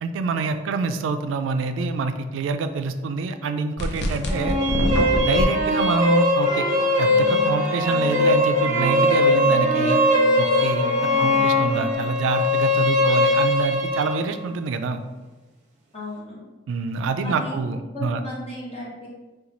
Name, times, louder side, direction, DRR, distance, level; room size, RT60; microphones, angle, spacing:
voice 1, 0.0-4.6 5.1-6.7 7.0-10.0 10.4-15.0 16.7-18.2, right 4 dB, 85° right, 8 dB, 0.3 m, -26 dB
sound 1, 3.8-5.4, left 1 dB, 65° left, 0.5 m, -24 dB
sound 2, 4.3-14.2, left 1 dB, 40° right, 0.6 m, -20 dB
sound 3, 6.4-11.9, right 1 dB, ahead, 0.6 m, -34 dB
voice 2, 11.1-11.5 15.9-16.5 17.2-17.7 17.9-19.1, left 2 dB, 35° left, -7 dB, 1.2 m, -35 dB
2.9 x 2.3 x 3.8 m, 1.2 s
head